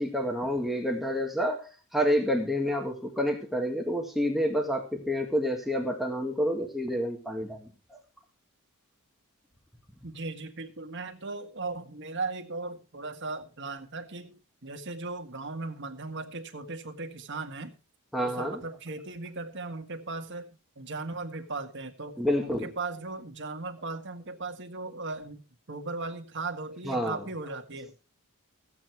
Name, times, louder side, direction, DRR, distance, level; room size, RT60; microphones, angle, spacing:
voice 1, 0.0-8.0 18.1-18.6 22.2-22.7 26.8-27.2, equal, ahead, 1 dB, 1.7 m, -29 dB
voice 2, 10.0-14.3 14.6-17.7 18.2-25.4 25.7-28.0, right 3 dB, 55° right, 5 dB, 1.7 m, -37 dB
15.0 x 8.6 x 4.6 m, 0.34 s
head